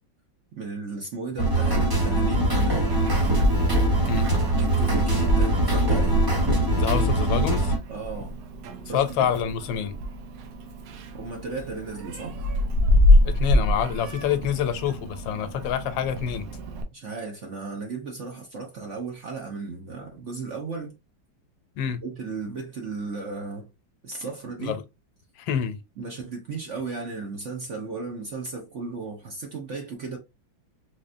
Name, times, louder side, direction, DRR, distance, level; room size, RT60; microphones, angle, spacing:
voice 1, 0.5-3.0 4.1-4.2 4.6-6.2 7.9-8.4 8.8-9.3 11.1-12.4 16.9-20.9 22.0-23.7 24.0-24.8 26.0-30.2, right 4 dB, 55° right, 0.9 m, -35 dB
sound 1, 1.4-7.8, right 1 dB, 15° right, 0.8 m, -22 dB
Meow, 2.9-16.8, left 1 dB, 70° right, 1.3 m, -26 dB
voice 2, 6.8-7.7 8.9-9.9 13.2-16.5 21.8-22.0 24.6-24.8 25.4-25.8, left 9 dB, 80° left, 1.4 m, -27 dB
4.1 x 3.1 x 2.5 m
omnidirectional pair, 2.1 m